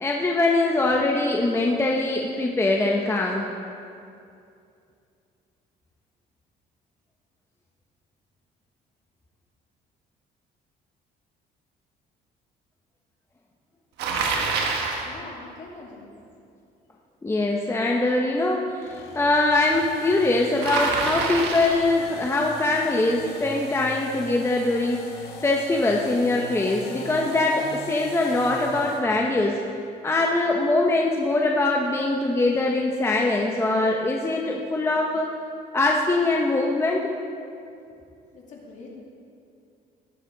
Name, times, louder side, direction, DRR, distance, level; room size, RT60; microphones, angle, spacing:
voice 1, 0.0-3.5 17.2-29.6 30.0-35.3 35.7-37.1, left 2 dB, 15° left, 0 dB, 0.8 m, -23 dB
Bicycle, 14.0-15.1 20.6-21.9, right 4 dB, 80° right, 1.5 m, -26 dB
voice 2, 15.0-16.2 38.3-38.9, left 3 dB, 45° left, -2 dB, 2.6 m, -43 dB
sound 1, 18.8-29.1, left 2 dB, 80° left, 1.9 m, -40 dB
18.0 x 7.4 x 3.9 m, 2.5 s
cardioid pair, 110°, 17 cm